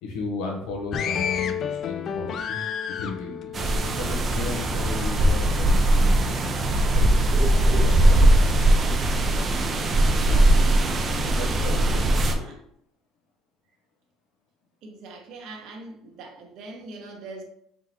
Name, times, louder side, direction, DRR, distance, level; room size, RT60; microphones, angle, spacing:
voice 1, 0.0-2.6 2.9-3.5 3.9-7.1 7.8-8.5 9.8-10.5 11.1-12.3, left 4 dB, 85° left, 0 dB, 0.8 m, -35 dB
sound 1, 0.9-4.6 5.0-6.0 6.6-6.9, left 7 dB, 40° left, 0.3 m, -31 dB
sound 2, 3.5-12.3, right 1 dB, 30° right, 0.5 m, -20 dB
voice 2, 12.3-12.6 14.8-17.4, right 3 dB, 60° right, 1 dB, 1.0 m, -41 dB
3.8 x 3.6 x 2.9 m, 0.70 s
cardioid pair, 145°, 0 cm